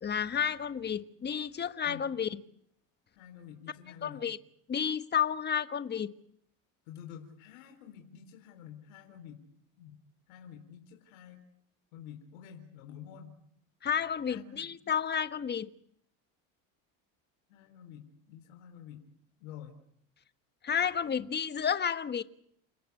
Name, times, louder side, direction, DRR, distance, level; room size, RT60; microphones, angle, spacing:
voice 1, 0.0-2.3 4.0-4.4 4.7-6.1 13.8-15.7 20.6-22.2, left 8 dB, 25° left, 1.4 m, -31 dB
voice 2, 3.1-4.3 6.9-9.4 9.8-10.0 10.3-11.4 11.9-13.4 14.3-14.7 17.5-19.1 19.4-19.8 21.0-21.1, left 9 dB, 85° left, 4.0 m, -49 dB
30.0 x 17.0 x 8.3 m
supercardioid pair, 115°, 41 cm